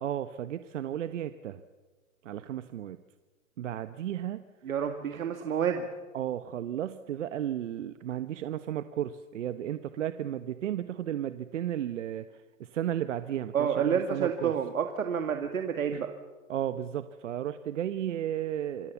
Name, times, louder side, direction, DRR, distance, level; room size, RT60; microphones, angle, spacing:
voice 1, 0.0-1.6 2.2-3.0 3.6-4.4 5.4-5.5 6.1-12.3 12.6-14.5 15.9-16.0 16.5-18.9, right 11 dB, 60° right, 11 dB, 1.1 m, -34 dB
voice 2, 4.6-5.8 13.5-16.1, right 7 dB, 80° right, 6 dB, 2.3 m, -29 dB
27.5 x 21.0 x 7.0 m, 1.3 s
hypercardioid pair, 155°, 40 cm